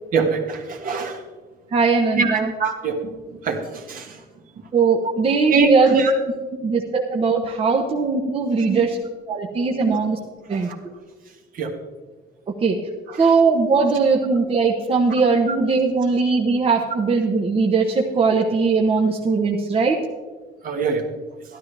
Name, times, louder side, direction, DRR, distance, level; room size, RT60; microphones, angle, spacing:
voice 1, 0.1-1.2 2.1-3.1 3.4-4.2 5.5-6.1 7.5-7.6 8.7-8.8 9.8-10.0 10.5-10.7 11.6-11.7 13.1-13.3 15.5-15.6 20.6-21.0, right 4 dB, 55° right, 3 dB, 1.7 m, -23 dB
voice 2, 1.7-2.5 4.7-5.9 6.6-9.0 9.3-10.2 10.5-10.7 12.6-12.8 13.2-20.0, right 4 dB, 35° right, 0 dB, 1.1 m, -19 dB
12.5 x 12.0 x 3.4 m, 1.3 s
cardioid pair, 110°, 17 cm